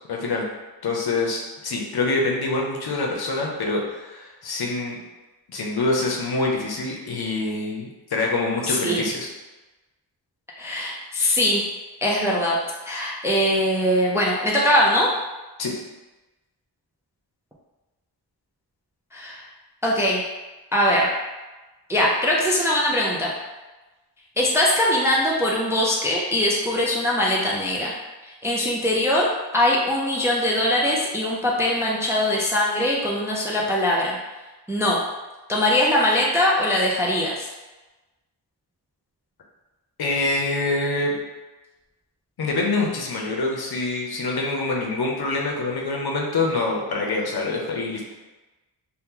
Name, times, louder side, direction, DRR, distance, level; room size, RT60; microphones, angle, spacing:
voice 1, 0.1-0.5 0.8-5.0 5.5-9.3 15.6-15.7 40.0-41.2 42.4-48.0, left 3 dB, 60° left, -1 dB, 0.7 m, -25 dB
voice 2, 8.6-9.0 10.6-11.6 12.0-12.6 12.9-15.1 19.1-19.5 19.8-20.2 20.7-21.1 21.9-23.3 24.4-28.0 28.2-29.3 29.5-34.2 34.7-35.0 35.5-37.5, left 1 dB, 5° right, -3 dB, 0.3 m, -21 dB
2.8 x 2.2 x 3.6 m, 1.2 s
wide cardioid pair, 115°, 43 cm